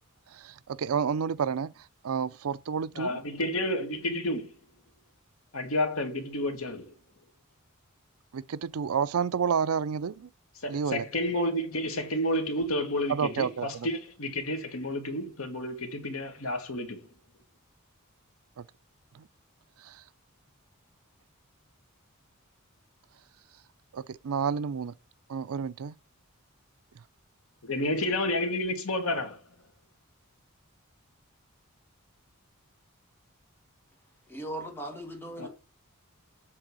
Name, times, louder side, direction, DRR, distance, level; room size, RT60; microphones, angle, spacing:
voice 1, 0.3-3.2 8.3-10.3 10.7-11.1 13.1-13.9 18.6-18.7 19.1-19.3 19.8-20.0 23.9-24.9 25.3-25.9, right 6 dB, 80° right, 0.5 m, -30 dB
voice 2, 3.0-4.5 5.5-6.9 10.6-17.0 27.6-29.4 35.4-35.5, left 1 dB, 70° left, 1.7 m, -30 dB
voice 3, 34.3-35.5, right 1 dB, 10° left, 2.1 m, -38 dB
7.6 x 3.8 x 6.1 m
head